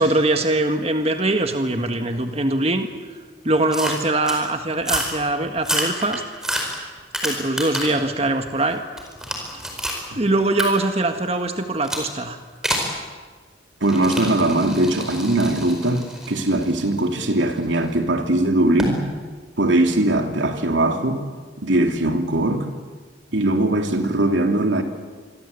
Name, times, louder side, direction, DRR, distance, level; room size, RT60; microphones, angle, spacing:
voice 1, 0.0-2.9 3.4-6.2 7.2-8.8 10.2-12.4 12.6-12.8, right 2 dB, 35° right, 1.6 m, -22 dB
sound 1, 3.7-4.4 4.8-5.2 5.6-8.0 8.5-10.0 10.6-10.7 11.8-12.1 12.6-12.9 13.8-17.8 18.8-19.0, equal, 5° right, 4.7 m, -28 dB
voice 2, 13.8-19.1 19.6-21.3 21.6-22.7 23.3-24.8, right 1 dB, 90° right, 2.9 m, -20 dB
27.5 x 23.0 x 8.3 m
head